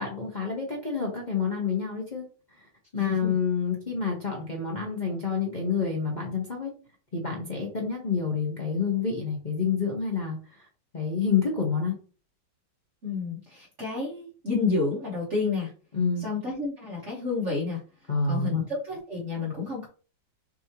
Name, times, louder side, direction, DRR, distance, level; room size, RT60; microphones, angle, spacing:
voice 1, 0.0-2.2 2.5-2.7 2.9-6.7 7.1-10.6 10.9-11.9 15.9-16.3 18.1-18.6, left 5 dB, 35° left, -3 dB, 0.8 m, -28 dB
voice 2, 2.9-3.4 13.0-15.7 16.2-17.8 18.3-19.9, left 4 dB, 40° right, -5 dB, 1.4 m, -30 dB
6.2 x 2.9 x 3.0 m, 0.38 s
omnidirectional pair, 2.1 m